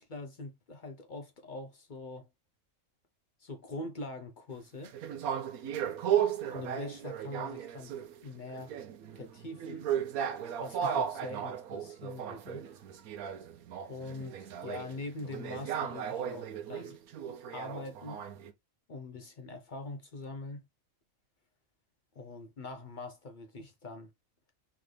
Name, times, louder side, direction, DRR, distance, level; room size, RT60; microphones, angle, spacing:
voice 1, 0.0-2.3 3.4-4.9 6.5-7.9 8.2-8.7 9.1-9.9 10.6-12.7 13.9-17.0 17.5-18.2 18.9-20.7 22.2-24.1, left 2 dB, 50° left, 0.6 m, -43 dB
sound 1, 4.8-8.2 8.5-18.5, right 9 dB, 80° right, 1.1 m, -35 dB
3.8 x 3.3 x 3.1 m
omnidirectional pair, 1.5 m